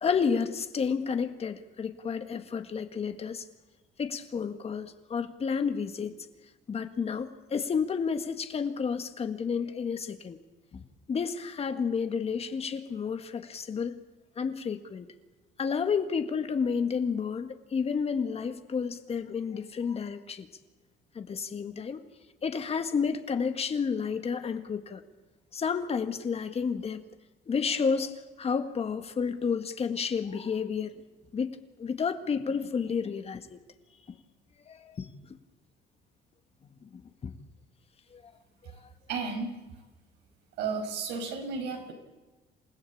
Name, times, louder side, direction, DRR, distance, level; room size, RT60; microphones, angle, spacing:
voice 1, 0.0-3.4 4.0-6.2 6.7-10.4 11.1-14.0 14.4-15.1 15.6-20.5 21.2-22.0 22.4-25.0 25.5-27.0 27.5-31.0 31.3-31.5 31.8-33.6 34.7-35.1 36.8-36.9 37.2-37.3 38.1-38.2 38.6-38.7, left 6 dB, 35° left, 8 dB, 1.8 m, -31 dB
voice 2, 39.1-39.5 40.6-41.9, right 4 dB, 85° right, 4 dB, 5.8 m, -33 dB
28.5 x 16.0 x 8.7 m, 1.2 s
cardioid pair, 110°, 17 cm